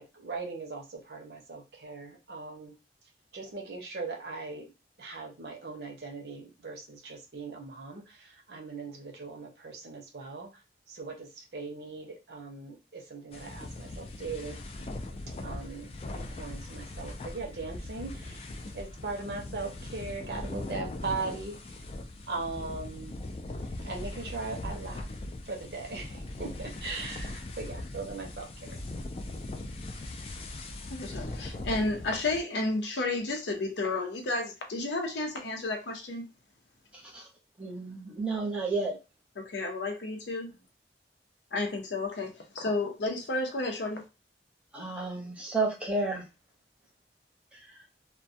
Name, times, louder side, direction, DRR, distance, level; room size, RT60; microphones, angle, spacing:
voice 1, 0.0-2.7 3.3-4.7 5.0-10.6 10.9-14.6 15.4-18.5 18.7-21.8 22.3-23.2 23.8-25.1 25.5-28.8, right 3 dB, 70° right, 0.7 m, -39 dB
sound 1, 13.3-32.4, left 2 dB, 35° left, 0.3 m, -40 dB
voice 2, 30.9-36.2 39.4-40.5 41.5-44.0, left 2 dB, 90° left, 0.6 m, -32 dB
voice 3, 36.9-37.3 37.6-39.0 44.7-46.3 47.5-47.8, right 3 dB, 5° right, 0.7 m, -32 dB
2.2 x 2.2 x 2.6 m
head